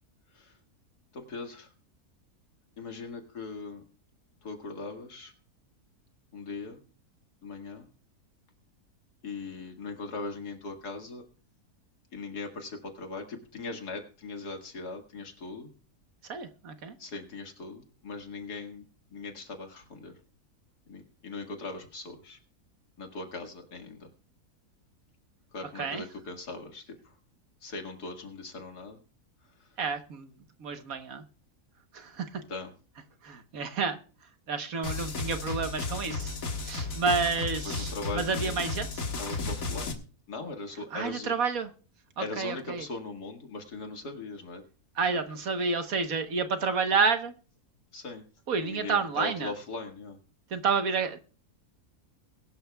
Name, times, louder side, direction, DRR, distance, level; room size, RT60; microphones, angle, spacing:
voice 1, 1.1-1.7 2.8-3.8 4.4-5.3 6.3-6.8 7.4-7.9 9.2-11.2 12.1-15.7 17.0-20.2 20.9-22.4 23.0-24.1 25.5-27.1 27.6-29.0 29.6-29.8 32.5-32.7 37.6-38.5 39.2-40.0 40.3-41.3 42.2-44.6 47.9-48.2 48.6-50.2, left 3 dB, 85° left, 4 dB, 2.4 m, -39 dB
voice 2, 16.3-16.9 25.7-26.0 29.8-30.3 30.6-31.2 31.9-32.4 33.2-34.0 34.5-36.4 36.6-39.1 40.9-41.7 42.2-42.8 45.0-47.3 48.5-49.5 50.5-51.2, right 5 dB, 65° right, 8 dB, 1.6 m, -30 dB
sound 1, 34.8-39.9, left 3 dB, 60° left, 1.9 m, -34 dB
21.5 x 12.0 x 2.3 m, 0.38 s
omnidirectional pair, 1.6 m